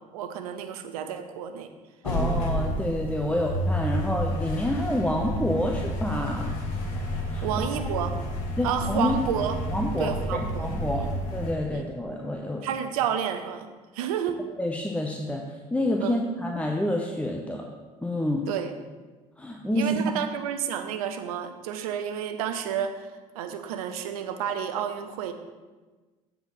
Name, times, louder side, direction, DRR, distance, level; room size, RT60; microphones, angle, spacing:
voice 1, 0.1-1.7 3.3-3.4 7.4-8.1 8.6-9.6 10.0-11.1 11.7-11.8 12.6-13.7 13.9-14.4 16.0-16.2 18.5-18.7 19.7-23.1 23.3-25.3, right 8 dB, 85° right, 8 dB, 0.7 m, -30 dB
sound 1, 2.0-11.5, equal, 80° left, 1.3 m, -30 dB
voice 2, 2.0-6.5 7.3-7.7 8.6-9.1 9.7-12.6 14.6-15.4 15.7-17.7 18.0-18.4 19.4-20.2, left 1 dB, 5° left, 1 dB, 0.8 m, -28 dB
8.0 x 4.6 x 5.5 m, 1.3 s
hypercardioid pair, 60°, 18 cm